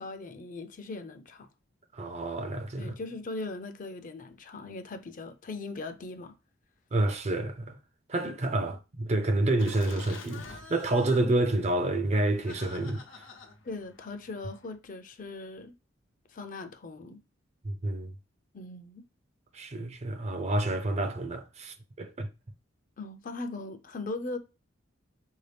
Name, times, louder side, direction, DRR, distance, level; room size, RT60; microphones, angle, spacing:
voice 1, 0.0-1.5 2.8-6.3 8.6-8.7 11.2-11.4 13.6-15.7 16.3-17.2 18.5-19.0 23.0-24.4, left 3 dB, 45° left, 0.5 m, -39 dB
voice 2, 1.9-2.9 6.9-7.8 8.1-13.0 17.6-18.1 19.5-22.3, right 2 dB, 35° right, 0.5 m, -29 dB
Laughter, 9.6-14.8, left 3 dB, 80° left, 0.8 m, -48 dB
4.7 x 2.7 x 3.4 m
head